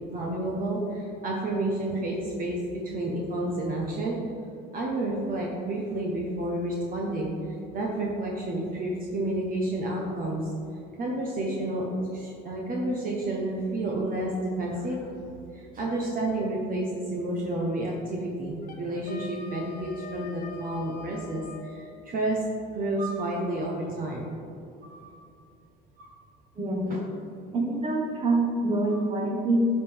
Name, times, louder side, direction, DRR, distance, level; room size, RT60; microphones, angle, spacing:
voice 1, 0.1-4.2 4.7-10.5 11.0-15.1 15.5-22.4 22.7-24.3 24.8-25.1 26.0-26.1 26.9-27.0 28.9-29.0, right 1 dB, 40° right, -2 dB, 1.1 m, -30 dB
Wind instrument woodwind instrument, 18.6-21.7, left 5 dB, 45° left, 1.3 m, -43 dB
voice 2, 26.6-26.9 27.5-29.7, right 2 dB, 25° right, -1 dB, 1.3 m, -25 dB
10.5 x 5.4 x 3.6 m, 2.6 s
cardioid pair, 135°, 21 cm